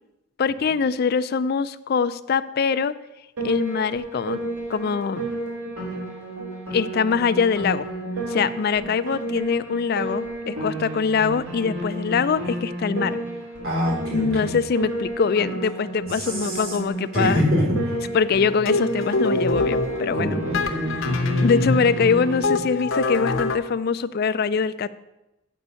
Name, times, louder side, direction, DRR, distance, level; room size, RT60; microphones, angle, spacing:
voice 1, 0.4-2.9 3.4-4.4 4.7-5.3 6.7-7.9 8.3-13.2 14.1-17.4 18.1-20.4 21.4-24.9, left 5 dB, 45° left, 14 dB, 0.3 m, -23 dB
Piano, 3.4-22.6, right 1 dB, 85° right, 3.5 m, -32 dB
voice 2, 13.6-14.6 16.1-16.8 17.1-18.0 20.1-21.1, equal, 65° right, -4 dB, 3.7 m, -25 dB
sound 1, 18.3-23.6, left 2 dB, 60° left, 0.8 m, -25 dB
8.3 x 5.3 x 6.8 m, 0.97 s
head